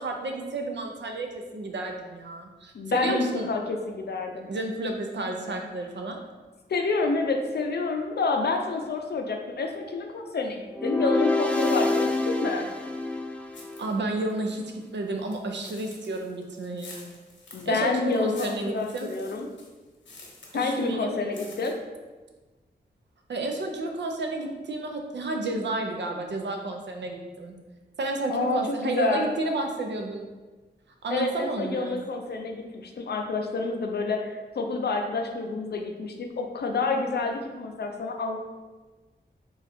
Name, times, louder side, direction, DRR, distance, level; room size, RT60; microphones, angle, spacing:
voice 1, 0.0-3.5 4.5-6.2 13.8-17.1 17.7-19.1 20.5-21.2 23.3-27.5 28.0-30.3 31.0-32.0, right 2 dB, 70° right, 3 dB, 0.6 m, -31 dB
voice 2, 2.7-4.5 6.7-12.7 17.5-19.5 20.5-21.8 28.3-29.3 31.1-38.4, left 3 dB, 60° left, 3 dB, 0.5 m, -28 dB
sound 1, 10.7-14.0, left 2 dB, 5° left, 0.3 m, -27 dB
sound 2, 13.5-14.0 14.3-20.9 21.2-21.7, left 2 dB, 90° left, 0.9 m, -49 dB
3.9 x 2.4 x 4.2 m, 1.3 s
wide cardioid pair, 105°, 19 cm